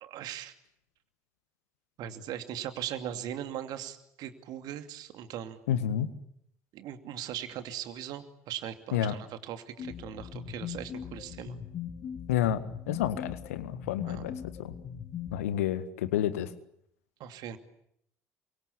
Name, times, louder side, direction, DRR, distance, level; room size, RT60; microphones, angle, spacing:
voice 1, 0.0-0.5 2.0-5.6 6.7-11.6 14.1-14.2 17.2-17.6, right 10 dB, 55° right, 8 dB, 2.6 m, -39 dB
voice 2, 5.7-6.1 8.9-9.1 12.3-12.6 12.9-14.7 15.3-16.5, left 10 dB, 70° left, 13 dB, 1.7 m, -29 dB
sound 1, 9.8-15.4, left 8 dB, 45° left, 2.6 m, -40 dB
28.0 x 24.5 x 8.7 m, 0.74 s
figure-of-eight pair, 55°, 8 cm